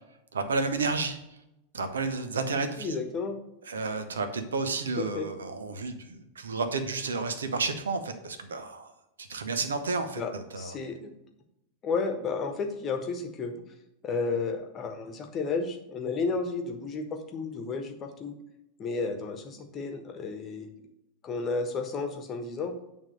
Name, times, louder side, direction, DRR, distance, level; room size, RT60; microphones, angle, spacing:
voice 1, 0.3-1.2 1.7-3.0 3.7-8.9 9.2-10.7, right 4 dB, 70° right, 8 dB, 0.8 m, -31 dB
voice 2, 2.8-3.4 5.0-5.3 10.2-11.1 11.8-13.6 14.0-18.4 18.8-20.7 21.2-22.7, left 4 dB, 30° left, 5 dB, 1.2 m, -32 dB
8.9 x 3.6 x 6.5 m, 0.89 s
figure-of-eight pair, 90°, 0 cm